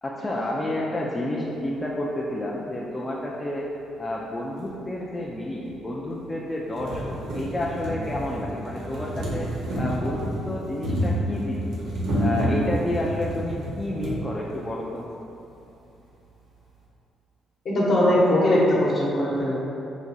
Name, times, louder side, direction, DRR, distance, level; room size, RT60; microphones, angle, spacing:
voice 1, 0.0-3.7 4.0-9.5 9.8-11.7 12.2-15.0, left 1 dB, 20° left, -5 dB, 0.3 m, -30 dB
sound 1, 4.6-4.7 5.7-5.8 6.2-6.3 6.6-14.2 15.1-15.2 15.4-15.5, equal, 80° right, 0.8 m, -29 dB
voice 2, 17.6-19.5, left 1 dB, 55° left, -6 dB, 1.0 m, -20 dB
4.9 x 2.2 x 2.6 m, 2.7 s
cardioid pair, 90°, 0 cm